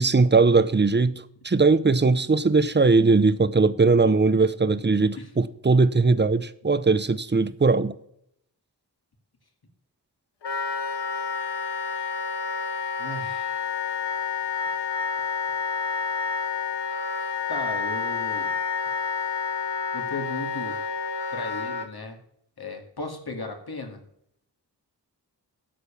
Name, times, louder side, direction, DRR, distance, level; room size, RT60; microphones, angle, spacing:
voice 1, 0.0-7.9, right 3 dB, 25° right, 0.7 m, -20 dB
Wind instrument woodwind instrument, 10.4-21.9, left 5 dB, 85° left, 0.9 m, -29 dB
voice 2, 13.0-13.7 17.5-18.5 19.9-20.8 21.3-22.2 22.6-24.0, left 3 dB, 65° left, 2.3 m, -35 dB
12.5 x 5.1 x 5.7 m
wide cardioid pair, 60°, 41 cm